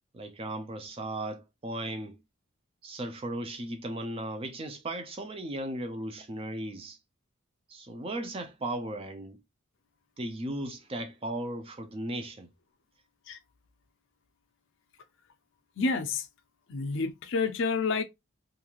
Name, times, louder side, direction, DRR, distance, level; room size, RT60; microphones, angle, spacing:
voice 1, 0.1-2.2 2.8-7.0 7.7-9.4 10.2-12.5, right 1 dB, 25° right, 0.4 m, -36 dB
voice 2, 15.8-16.3 16.7-18.0, left 4 dB, 60° left, 0.5 m, -29 dB
2.9 x 2.6 x 2.3 m
head